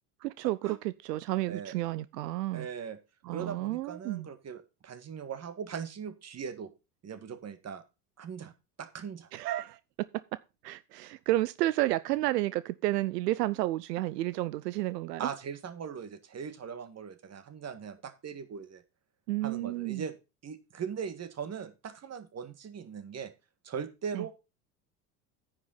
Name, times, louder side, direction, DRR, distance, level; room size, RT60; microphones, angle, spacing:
voice 1, 0.2-2.7 3.2-4.3 9.3-9.8 10.6-15.3 19.3-20.0 24.1-24.3, right 16 dB, 80° right, 0.6 m, -31 dB
voice 2, 2.5-3.0 3.3-6.7 7.0-7.8 8.2-8.5 8.8-9.3 15.2-18.8 19.4-20.2 20.4-23.3 23.6-24.3, right 7 dB, 30° right, 1.9 m, -40 dB
9.6 x 6.6 x 5.5 m
hypercardioid pair, 80°, 47 cm